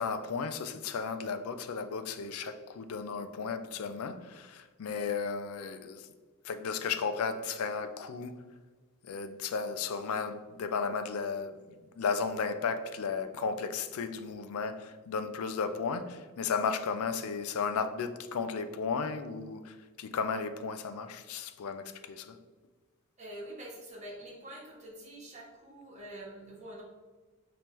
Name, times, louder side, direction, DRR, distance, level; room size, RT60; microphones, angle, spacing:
voice 1, 0.0-6.1 6.4-8.4 9.0-11.5 12.0-22.4, left 5 dB, 70° left, 0.4 m, -34 dB
voice 2, 23.2-26.8, right 1 dB, 35° right, 1.3 m, -46 dB
5.2 x 2.9 x 3.0 m
head